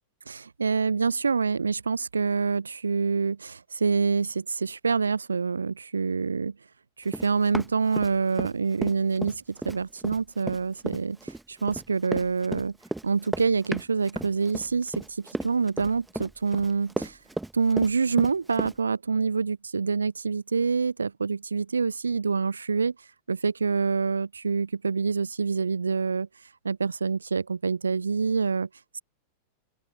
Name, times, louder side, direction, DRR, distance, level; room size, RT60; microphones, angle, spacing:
voice 1, 0.3-6.5 7.0-12.8 13.0-17.2 17.5-22.9 23.3-26.3 26.6-28.7 28.9-29.0, right 5 dB, 75° right, 0.4 m, -26 dB
Run, 7.1-8.5 8.8-18.7, right 2 dB, 5° right, 1.3 m, -34 dB
open air
figure-of-eight pair, 90°, 0 cm